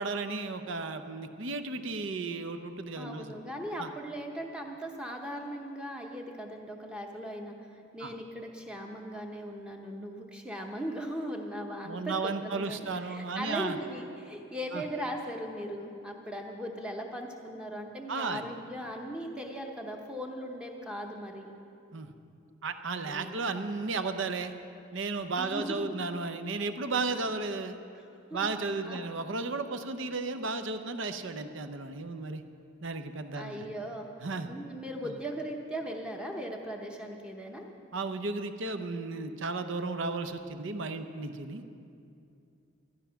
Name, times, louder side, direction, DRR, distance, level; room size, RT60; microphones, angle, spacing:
voice 1, 0.0-3.3 3.8-3.9 8.0-8.1 11.8-13.8 14.7-14.8 18.1-18.4 21.9-22.1 22.6-24.5 24.9-27.8 28.3-32.4 32.8-33.6 34.2-34.5 35.0-35.1 37.9-41.6, right 3 dB, 60° right, 9 dB, 0.7 m, -34 dB
voice 2, 3.0-21.5 23.0-23.5 25.4-25.9 28.0-28.5 28.8-29.0 33.4-34.1 34.4-37.7, equal, 5° right, 1 dB, 0.8 m, -39 dB
12.5 x 11.0 x 5.8 m, 2.5 s
head